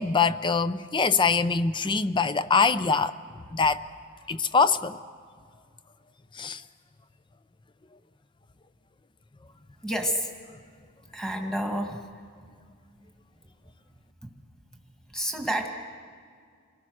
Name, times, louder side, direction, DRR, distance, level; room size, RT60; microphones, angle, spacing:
voice 1, 0.0-3.1 3.5-3.8 4.3-5.0 6.4-6.6, left 5 dB, 25° left, 14 dB, 0.5 m, -23 dB
voice 2, 9.8-10.3 11.1-12.0 14.2-14.3 15.1-15.7, equal, 5° left, 3 dB, 1.9 m, -29 dB
28.0 x 19.0 x 6.2 m, 2.1 s
head